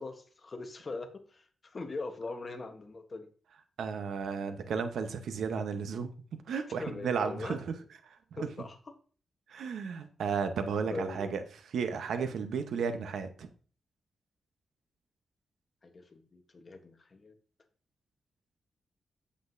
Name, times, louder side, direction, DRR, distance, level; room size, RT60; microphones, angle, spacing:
voice 1, 0.0-3.3 6.8-7.6 8.4-8.9 10.9-11.4 12.3-12.5 15.8-17.3, left 3 dB, 35° left, 6 dB, 1.0 m, -41 dB
voice 2, 3.8-6.1 6.5-7.7 8.3-8.5 9.5-11.4 11.7-13.5, right 6 dB, 85° right, 8 dB, 0.9 m, -33 dB
8.4 x 7.6 x 2.6 m, 0.42 s
wide cardioid pair, 140°, 0 cm